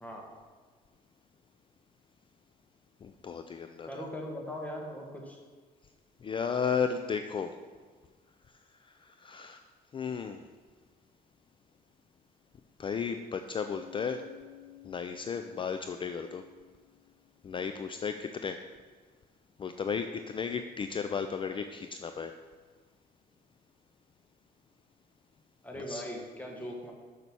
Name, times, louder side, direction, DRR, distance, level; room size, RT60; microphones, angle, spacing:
voice 1, 3.0-4.0 6.2-7.5 9.0-9.6 9.9-10.5 12.8-14.2 14.8-16.4 17.4-18.6 19.6-22.3 25.9-26.0, left 6 dB, 30° left, 8 dB, 0.4 m, -34 dB
voice 2, 3.9-5.4 25.6-26.9, equal, 10° left, 0 dB, 1.6 m, -40 dB
Bass guitar, 13.7-17.5, left 13 dB, 60° left, 2.2 m, -54 dB
6.8 x 6.7 x 6.1 m, 1.5 s
cardioid pair, 110°, 17 cm